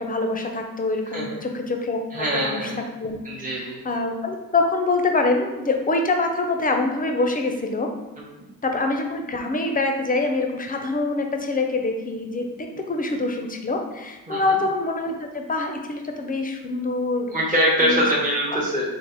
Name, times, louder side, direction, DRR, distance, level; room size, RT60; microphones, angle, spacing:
voice 1, 0.0-2.7 3.0-3.2 3.6-7.9 8.6-17.3 17.8-18.0 18.5-18.6, left 3 dB, 25° left, 3 dB, 0.5 m, -25 dB
voice 2, 2.1-2.8 3.2-3.8 14.3-14.6 17.3-18.9, equal, 25° right, -5 dB, 1.0 m, -23 dB
3.3 x 2.1 x 3.8 m, 1.1 s
cardioid pair, 65°, 35 cm